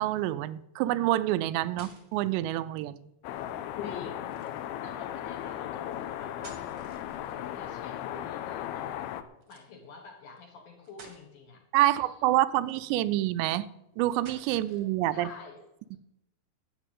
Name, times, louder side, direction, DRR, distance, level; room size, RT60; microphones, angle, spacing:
voice 1, 0.0-3.0 11.7-13.7 14.0-15.3, right 14 dB, 85° right, 2.8 m, -27 dB
sound 1, 1.6-2.3 4.3-4.7 6.2-7.5 9.4-9.7 10.4-10.5 10.8-11.3 12.6-13.2 14.1-14.9, right 3 dB, 45° right, 1.3 m, -52 dB
sound 2, 3.2-9.2, left 11 dB, 80° left, 2.4 m, -36 dB
voice 2, 3.8-4.5 4.8-6.7 7.3-9.1 9.5-12.2 14.6-14.8 15.1-15.6, left 4 dB, 60° left, 2.4 m, -49 dB
11.0 x 8.1 x 9.0 m
omnidirectional pair, 5.0 m